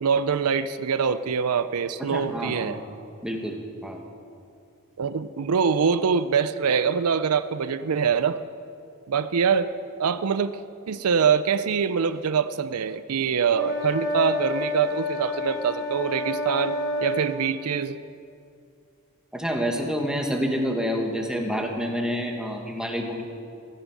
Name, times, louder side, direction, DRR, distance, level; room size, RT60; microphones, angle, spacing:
voice 1, 0.0-2.8 5.0-8.4 9.1-9.7 10.0-10.6 10.9-16.7 17.0-18.0, right 6 dB, 80° right, 13 dB, 0.5 m, -24 dB
voice 2, 2.1-2.8 3.2-4.0 19.3-23.2, equal, 5° right, 1 dB, 1.7 m, -28 dB
sound 1, 13.5-17.4, left 2 dB, 15° left, 3.3 m, -29 dB
15.0 x 14.5 x 6.2 m, 2.4 s
head